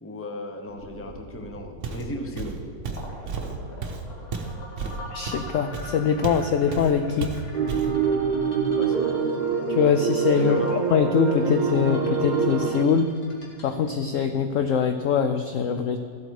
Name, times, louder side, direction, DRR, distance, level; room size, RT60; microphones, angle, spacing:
voice 1, 0.0-2.6 8.8-9.2 10.3-10.8, left 1 dB, 10° left, 3 dB, 0.6 m, -35 dB
sound 1, 0.7-14.8, left 1 dB, 55° left, 2.4 m, -43 dB
Walk footsteps, 1.8-2.1 2.4-6.5 6.7-6.9 7.2-7.9, right 5 dB, 50° right, 1.1 m, -32 dB
voice 2, 5.1-7.3 9.7-10.6 10.9-13.1 13.6-16.0, left 6 dB, 80° left, 7 dB, 0.7 m, -23 dB
sound 2, 7.5-12.8, right 5 dB, 85° right, 0.4 m, -25 dB
14.5 x 8.0 x 4.7 m, 2.4 s
omnidirectional pair, 1.9 m